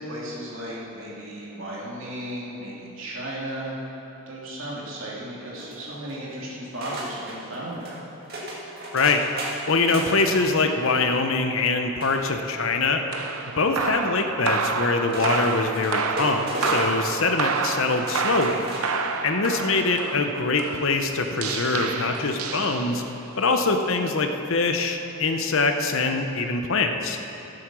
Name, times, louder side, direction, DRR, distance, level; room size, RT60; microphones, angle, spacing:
voice 1, 0.0-3.8 4.3-8.0, right 1 dB, 60° right, -5 dB, 2.8 m, -35 dB
sound 1, 5.5-6.2 6.8-7.4 7.8-8.0 8.3-10.4 10.8-11.2 12.0-12.8 14.2-14.3 15.1-17.0 17.4-17.7 18.0-19.0 19.4-19.5, right 1 dB, 45° right, 2.0 m, -35 dB
voice 2, 8.9-9.2 9.7-13.0 13.6-18.7 19.2-23.0 23.4-27.2, left 3 dB, 65° left, 5 dB, 0.8 m, -23 dB
sound 2, 13.1-23.3, right 5 dB, 80° right, 0.7 m, -29 dB
14.0 x 7.8 x 6.2 m, 3.0 s
head